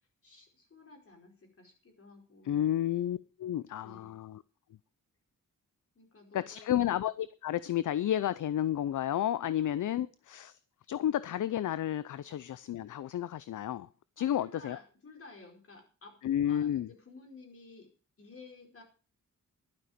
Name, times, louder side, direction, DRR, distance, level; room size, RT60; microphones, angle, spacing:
voice 1, 0.2-2.8 3.8-4.2 5.9-6.9 14.2-16.2 16.5-17.9 18.2-18.8, left 3 dB, 45° left, 4.9 m, -53 dB
voice 2, 2.4-4.4 6.3-10.5 10.9-13.9 14.2-14.8 16.2-16.9, left 11 dB, 70° left, 0.6 m, -31 dB
12.0 x 11.0 x 5.1 m
wide cardioid pair, 120°, 32 cm